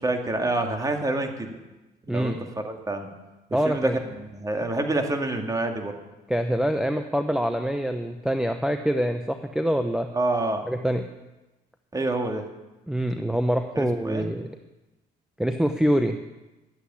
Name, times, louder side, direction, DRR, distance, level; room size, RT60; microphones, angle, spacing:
voice 1, 0.0-1.6 2.1-2.3 2.6-3.1 3.6-3.9 4.2-5.9 10.1-10.6 11.9-12.5 13.8-14.3, right 2 dB, 20° right, 4 dB, 2.3 m, -27 dB
voice 2, 2.1-2.4 3.5-4.0 6.3-10.1 10.7-11.1 12.9-14.5 15.4-16.2, equal, 5° right, 6 dB, 0.8 m, -25 dB
12.0 x 8.2 x 9.8 m, 1.1 s
cardioid pair, 95°, 18 cm